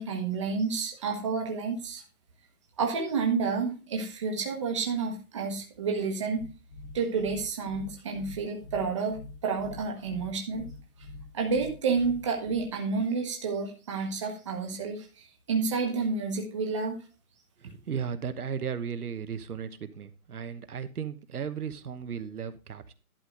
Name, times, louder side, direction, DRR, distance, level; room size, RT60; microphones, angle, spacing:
voice 1, 0.0-2.0 2.8-6.4 6.9-10.7 11.3-17.0, right 5 dB, 20° right, 2 dB, 1.1 m, -30 dB
sound 1, 6.4-12.7, left 2 dB, 35° left, 1.3 m, -46 dB
voice 2, 17.6-22.9, right 7 dB, 80° right, 10 dB, 1.2 m, -35 dB
11.5 x 3.9 x 6.2 m, 0.34 s
hypercardioid pair, 170°, 44 cm